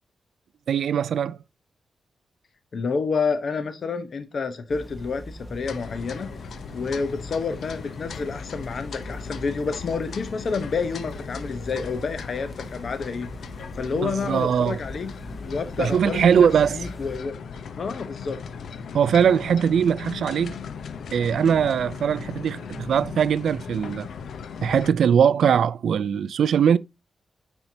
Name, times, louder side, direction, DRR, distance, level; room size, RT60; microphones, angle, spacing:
voice 1, 0.7-1.4 14.0-14.8 15.8-16.9 18.9-20.6 21.1-24.1 24.6-26.8, right 8 dB, 90° right, 0.3 m, -21 dB
voice 2, 2.7-6.3 6.7-13.3 13.7-15.1 15.4-17.3 17.8-18.4, left 5 dB, 50° left, 0.8 m, -29 dB
sound 1, 4.7-17.2, equal, 5° left, 0.7 m, -42 dB
sound 2, 5.6-24.9, left 6 dB, 80° left, 0.6 m, -38 dB
9.6 x 4.5 x 2.7 m
wide cardioid pair, 175°, 0 cm